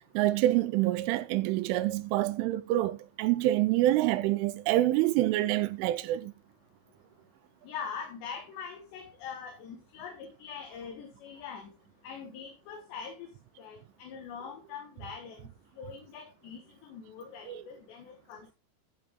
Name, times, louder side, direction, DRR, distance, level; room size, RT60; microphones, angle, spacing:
voice 1, 0.1-6.3 17.5-17.6, right 15 dB, 85° right, 3.1 m, -26 dB
voice 2, 7.6-11.7 12.0-13.3 13.6-15.5 15.8-18.5, left 6 dB, 70° left, 3.5 m, -43 dB
14.0 x 5.9 x 3.7 m
omnidirectional pair, 5.7 m